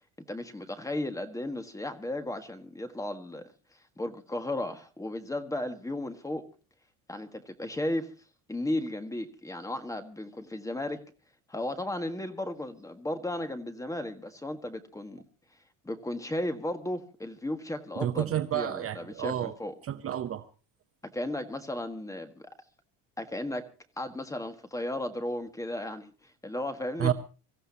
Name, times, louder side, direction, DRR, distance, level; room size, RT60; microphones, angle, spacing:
voice 1, 0.3-3.5 4.0-6.5 7.1-8.1 8.5-11.0 11.5-15.2 15.8-19.7 21.0-22.3 23.2-23.7 24.0-27.1, left 1 dB, 10° left, 1.6 m, -35 dB
voice 2, 18.0-19.5 19.8-20.5 27.0-27.1, right 10 dB, 35° right, 0.8 m, -30 dB
25.0 x 15.0 x 2.8 m
cardioid pair, 155°, 41 cm